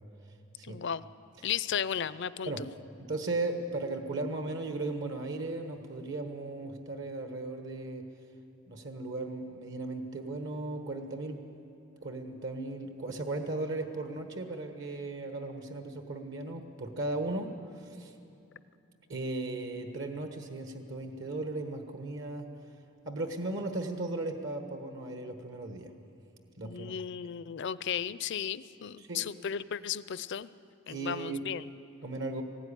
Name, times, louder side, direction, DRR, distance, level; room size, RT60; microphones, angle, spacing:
voice 1, 0.6-1.0 1.4-2.7 26.6-30.5 30.9-31.7, left 8 dB, 60° left, 16 dB, 0.5 m, -35 dB
voice 2, 3.0-8.0 8.7-11.4 12.0-18.1 19.1-22.5 23.0-25.9 26.6-26.9 29.0-29.3 30.9-31.4 32.0-32.4, right 2 dB, 65° right, 6 dB, 1.4 m, -36 dB
19.5 x 16.0 x 9.9 m, 2.7 s
head